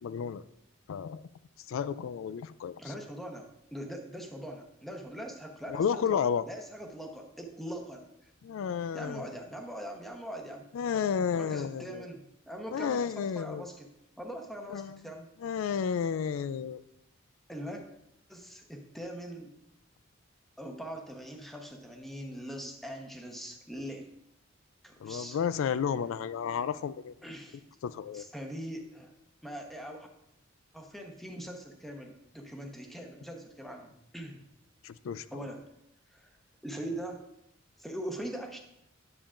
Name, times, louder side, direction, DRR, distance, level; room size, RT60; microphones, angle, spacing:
voice 1, 0.0-0.4 0.9-1.2 1.7-2.8 5.7-6.4 8.4-9.3 10.7-12.1 12.7-13.6 14.7-15.0 15.4-16.8 25.0-27.1 27.8-28.3 34.8-35.3, left 7 dB, 80° left, 16 dB, 0.3 m, -32 dB
voice 2, 2.8-6.2 6.5-8.3 8.9-10.6 11.3-13.9 14.2-15.3 17.5-17.8 18.3-19.6 20.6-24.0 24.8-25.4 27.2-27.6 28.1-29.1 29.4-30.1 30.7-34.4 35.3-35.6 36.1-36.3 36.6-37.2 37.8-38.6, equal, ahead, 2 dB, 0.9 m, -41 dB
9.7 x 7.0 x 2.5 m, 0.80 s
head